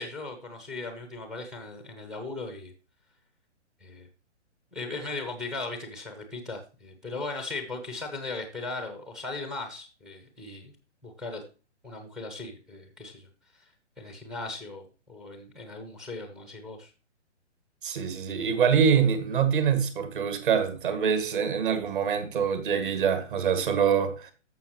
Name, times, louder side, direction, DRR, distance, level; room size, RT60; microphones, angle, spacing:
voice 1, 0.0-2.7 3.8-4.1 4.7-10.7 11.0-11.4 11.8-13.3 14.0-16.9, left 3 dB, ahead, 0.5 m, -38 dB
voice 2, 17.8-24.3, right 7 dB, 45° right, 1.9 m, -25 dB
14.0 x 5.5 x 3.0 m
figure-of-eight pair, 130°, 36 cm